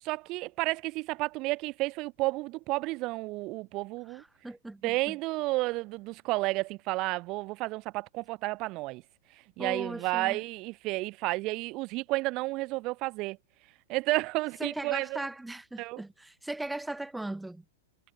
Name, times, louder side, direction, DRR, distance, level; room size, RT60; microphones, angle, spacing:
voice 1, 0.0-4.2 4.8-9.0 9.6-13.4 13.9-15.2 15.8-16.0, right 22 dB, 40° right, 6.6 m, -31 dB
voice 2, 4.1-5.2 9.6-10.4 14.6-17.6, right 2 dB, 5° right, 4.0 m, -38 dB
hypercardioid pair, 115°, 0 cm